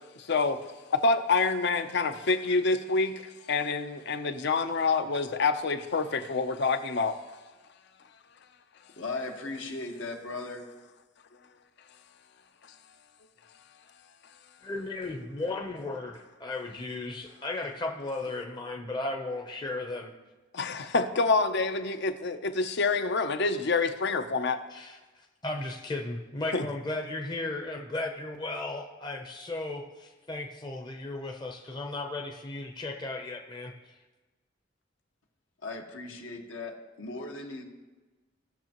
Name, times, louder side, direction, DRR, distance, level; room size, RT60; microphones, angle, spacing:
voice 1, 1.0-3.1 3.5-7.1 20.6-24.6 26.5-26.7, left 3 dB, 60° left, 0.7 m, -27 dB
voice 2, 9.0-10.7 35.6-37.6, left 3 dB, 80° left, 1.4 m, -37 dB
voice 3, 14.6-20.1 24.7-33.7, left 2 dB, 20° left, 0.7 m, -35 dB
17.5 x 6.4 x 3.0 m
head